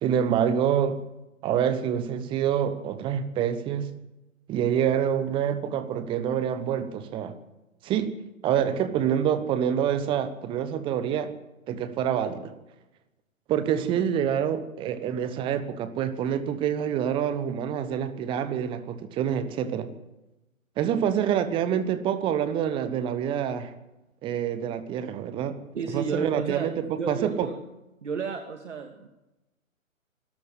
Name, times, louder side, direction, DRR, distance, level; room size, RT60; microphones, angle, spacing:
voice 1, 0.0-1.0 1.4-3.9 4.5-7.4 7.8-8.1 8.4-11.3 11.7-12.5 13.5-19.9 20.8-23.7 24.2-25.6 25.9-27.5, right 9 dB, 10° right, 12 dB, 1.1 m, -26 dB
voice 2, 25.7-26.7 27.0-27.6 28.0-29.1, right 5 dB, 60° right, 5 dB, 2.3 m, -32 dB
24.5 x 13.5 x 8.0 m, 0.99 s
figure-of-eight pair, 130°, 41 cm